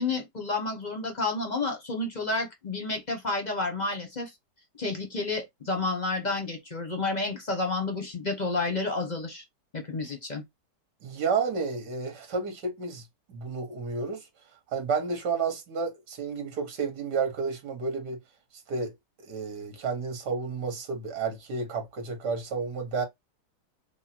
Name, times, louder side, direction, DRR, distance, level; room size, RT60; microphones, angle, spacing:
voice 1, 0.0-4.3 4.8-9.4 9.7-10.4, left 3 dB, 30° left, 1.0 m, -30 dB
voice 2, 11.0-13.0 13.3-14.2 14.7-18.2 18.7-18.9 19.2-23.1, right 5 dB, 70° right, 2.0 m, -31 dB
4.6 x 2.4 x 4.4 m
omnidirectional pair, 1.9 m